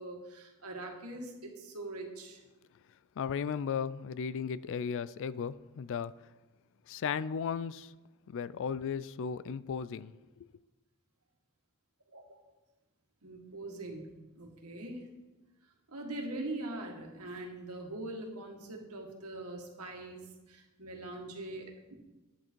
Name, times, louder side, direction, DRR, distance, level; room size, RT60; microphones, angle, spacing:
voice 1, 0.0-2.4 12.1-12.5 13.2-14.1 14.4-15.0 15.9-21.9, right 2 dB, 80° right, 1.9 m, -42 dB
voice 2, 3.2-6.1 6.9-7.9 8.3-10.2, left 6 dB, 60° left, 0.3 m, -35 dB
10.0 x 8.5 x 4.6 m
head